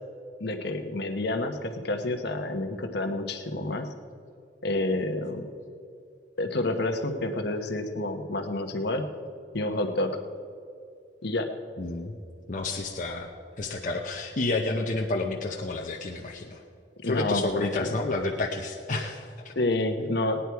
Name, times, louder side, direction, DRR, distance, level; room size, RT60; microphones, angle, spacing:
voice 1, 0.4-3.9 4.6-5.5 6.4-9.0 9.5-10.2 11.2-11.5 17.0-17.7 19.5-20.4, left 2 dB, 65° left, 6 dB, 1.1 m, -29 dB
voice 2, 11.8-12.1 12.5-13.3 13.6-16.6 17.0-19.5, left 2 dB, 45° left, 0 dB, 0.8 m, -30 dB
17.0 x 10.0 x 4.7 m, 2.4 s
head